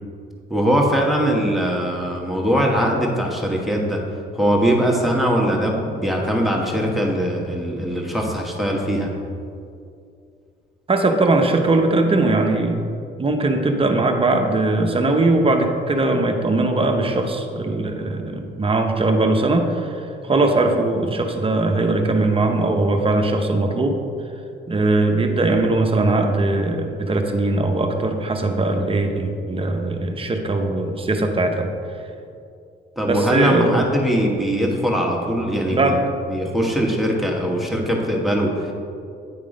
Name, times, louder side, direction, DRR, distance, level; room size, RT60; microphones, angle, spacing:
voice 1, 0.5-4.0 4.3-9.1 33.0-36.0 36.3-38.7, equal, ahead, -1 dB, 1.3 m, -21 dB
voice 2, 10.9-12.8 13.2-24.0 24.7-31.7 33.1-33.8 35.7-36.0, right 2 dB, 25° right, 4 dB, 0.8 m, -20 dB
9.5 x 3.6 x 5.0 m, 2.4 s
cardioid pair, 90°, 20 cm